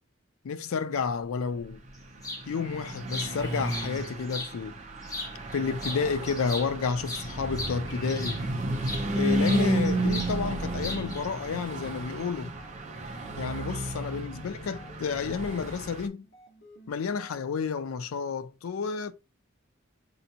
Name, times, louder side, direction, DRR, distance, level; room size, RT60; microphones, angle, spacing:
voice 1, 0.4-1.8 2.5-4.8 5.5-8.4 9.1-12.5 13.4-16.3 16.9-19.1, left 5 dB, 85° left, 0.4 m, -31 dB
Car passing by / Truck, 1.7-16.1, right 1 dB, 35° right, 0.6 m, -32 dB
sound 1, 2.2-2.4 2.9-4.5 5.0-5.5 5.8-9.1 9.4-10.3 10.6-11.3, left 2 dB, 15° left, 0.8 m, -38 dB
sound 2, 12.0-17.8, right 1 dB, 55° left, 1.0 m, -52 dB
5.4 x 2.5 x 2.8 m
head